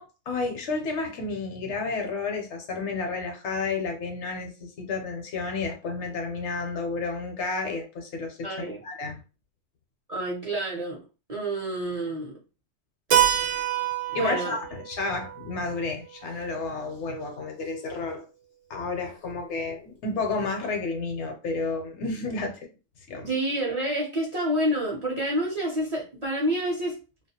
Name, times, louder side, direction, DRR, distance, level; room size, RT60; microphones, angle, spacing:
voice 1, 0.0-8.5 8.8-9.2 14.1-18.2 18.7-22.6 23.1-23.3, left 3 dB, 70° left, 0.9 m, -31 dB
voice 2, 8.4-8.8 10.1-11.0 11.3-12.3 14.1-14.6 23.3-27.0, right 1 dB, 40° right, 0.6 m, -28 dB
Keyboard (musical), 13.1-17.6, right 11 dB, 75° right, 0.9 m, -28 dB
2.3 x 2.1 x 2.7 m
omnidirectional pair, 1.3 m